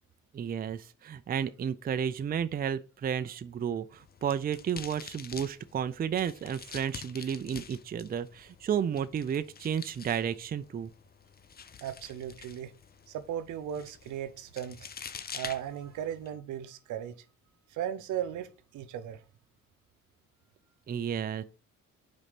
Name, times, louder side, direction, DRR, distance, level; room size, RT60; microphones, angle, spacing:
voice 1, 0.3-10.9 20.9-21.4, right 8 dB, 30° right, 0.4 m, -32 dB
sound 1, 3.9-16.3, left 6 dB, 30° left, 0.5 m, -47 dB
voice 2, 11.8-12.7 13.1-14.8 15.3-17.1 17.7-18.5 18.7-19.2, right 10 dB, 80° right, 0.8 m, -36 dB
5.0 x 4.1 x 5.9 m
cardioid pair, 90°, 30 cm